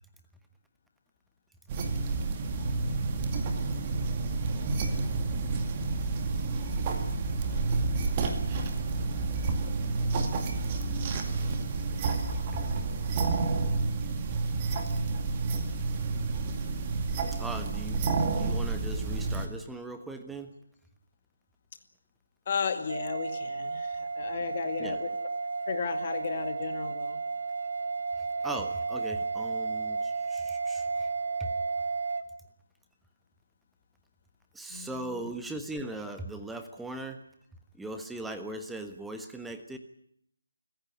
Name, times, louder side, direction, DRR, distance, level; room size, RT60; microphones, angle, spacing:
sound 1, 1.7-19.5, right 3 dB, 20° right, 2.2 m, -30 dB
voice 1, 12.5-12.9 14.0-14.1 17.3-20.5 24.8-25.0 28.2-31.1 31.4-31.5 34.5-37.2 37.7-39.8, right 2 dB, 5° right, 6 dB, 1.4 m, -39 dB
voice 2, 22.5-25.1 25.7-27.2 34.7-35.3, left 6 dB, 30° left, 7 dB, 2.2 m, -34 dB
sound 2, 22.9-32.2, right 4 dB, 55° right, 1.7 m, -33 dB
26.0 x 15.0 x 10.0 m, 0.70 s
figure-of-eight pair, 150°, 0 cm